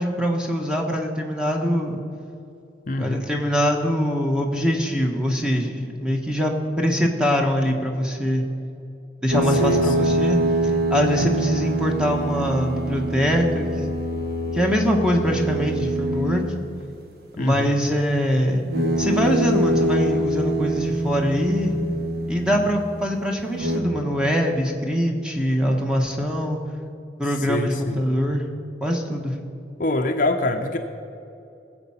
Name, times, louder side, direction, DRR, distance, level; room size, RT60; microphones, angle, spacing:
voice 1, 0.0-2.0 3.0-8.4 9.2-10.4 10.9-13.7 14.5-16.4 17.4-18.6 19.0-21.7 22.3-26.6 27.2-28.5 28.8-29.3, equal, 5° right, 1 dB, 1.2 m, -23 dB
voice 2, 2.9-3.3 9.6-10.1 17.4-17.7 27.5-28.0 29.8-30.8, left 2 dB, 45° left, 5 dB, 0.7 m, -24 dB
sound 1, 9.3-16.6 18.6-22.8 23.5-23.8, right 1 dB, 55° right, 1.4 m, -24 dB
19.0 x 7.6 x 5.7 m, 2.7 s
head